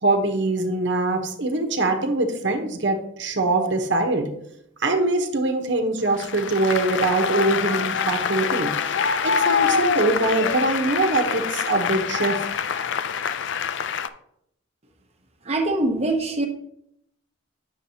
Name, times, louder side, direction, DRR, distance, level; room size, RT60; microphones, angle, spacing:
voice 1, 0.0-4.3 4.8-8.7 9.2-12.5, right 2 dB, 65° right, 5 dB, 1.0 m, -23 dB
Applause, 6.2-14.1, left 6 dB, 65° left, 0.4 m, -25 dB
voice 2, 15.5-16.5, right 2 dB, 30° right, 3 dB, 1.0 m, -23 dB
9.2 x 6.6 x 2.8 m, 0.75 s
head